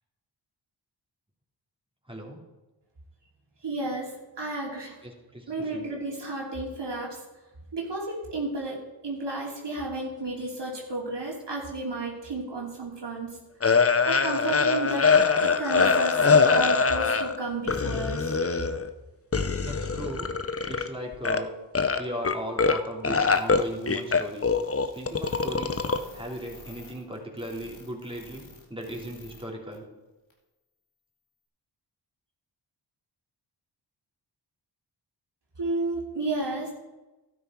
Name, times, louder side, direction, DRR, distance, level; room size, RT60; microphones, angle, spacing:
voice 1, 2.1-2.4 5.0-5.9 19.6-20.3 20.7-21.5 22.0-24.5 24.9-25.8 26.1-28.4 28.7-29.9, equal, 10° right, -1 dB, 3.2 m, -37 dB
voice 2, 3.6-5.0 5.5-7.2 7.7-8.8 9.0-13.4 14.1-15.1 15.4-18.4 35.6-36.7, right 2 dB, 65° right, -2 dB, 3.0 m, -32 dB
sound 1, 13.6-17.4 17.7-18.9 19.3-20.9 21.1-21.4 21.7-22.8 23.0-26.0, left 5 dB, 30° left, 0.9 m, -23 dB
sound 2, 23.3-29.4 29.7-29.8 30.3-30.4, left 3 dB, 90° left, 2.5 m, -50 dB
12.0 x 9.4 x 4.6 m, 1.1 s
cardioid pair, 40°, 45 cm